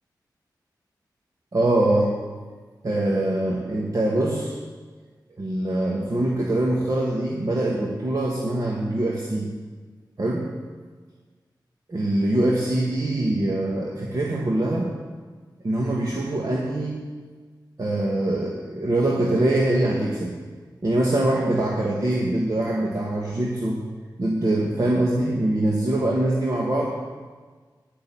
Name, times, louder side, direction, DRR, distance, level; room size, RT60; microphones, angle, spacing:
voice 1, 1.5-2.1 2.8-4.5 5.4-9.5 10.2-10.5 11.9-14.9 15.6-17.0 17.8-20.3 20.8-23.8 24.2-26.9, right 1 dB, 50° right, -3 dB, 1.8 m, -23 dB
10.0 x 6.6 x 9.0 m, 1.5 s
cardioid pair, 65°, 8 cm